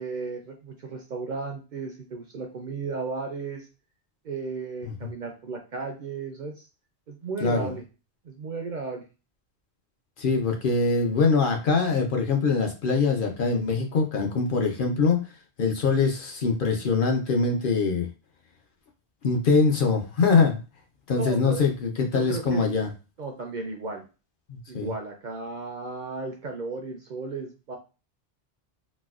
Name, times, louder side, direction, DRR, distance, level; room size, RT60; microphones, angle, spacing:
voice 1, 0.0-3.7 4.2-6.7 7.1-7.8 8.2-9.0 21.1-21.6 22.1-22.7 23.2-24.0 24.7-27.8, right 4 dB, 55° right, 2 dB, 0.6 m, -34 dB
voice 2, 7.4-7.7 10.2-15.2 15.6-18.1 19.2-20.6 21.1-22.9 24.5-24.9, left 4 dB, 55° left, 2 dB, 0.7 m, -23 dB
4.1 x 2.2 x 2.3 m, 0.32 s
omnidirectional pair, 1.2 m